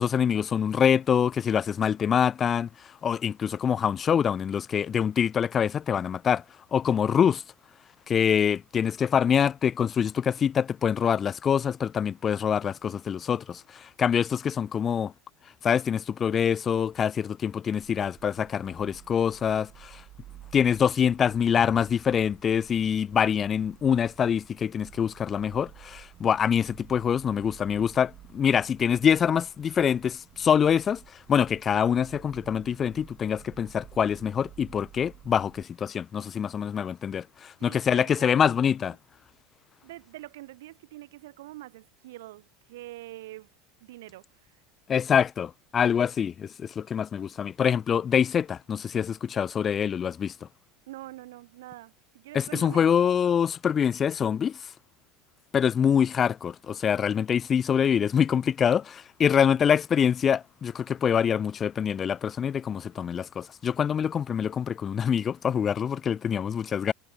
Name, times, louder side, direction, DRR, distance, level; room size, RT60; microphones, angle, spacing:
voice 1, 0.0-2.7 3.0-6.4 6.7-7.4 8.1-15.1 15.6-20.0 20.5-31.0 31.3-38.9 44.9-50.3 52.3-54.6 55.5-66.9, left 8 dB, 30° left, 0.8 m, -25 dB
sound 1, 17.8-35.6, right 13 dB, 45° right, 5.3 m, -52 dB
voice 2, 37.6-38.7 39.8-43.5 43.8-44.6 50.9-52.8, right 17 dB, 85° right, 2.5 m, -44 dB
supercardioid pair, 115°, 0 cm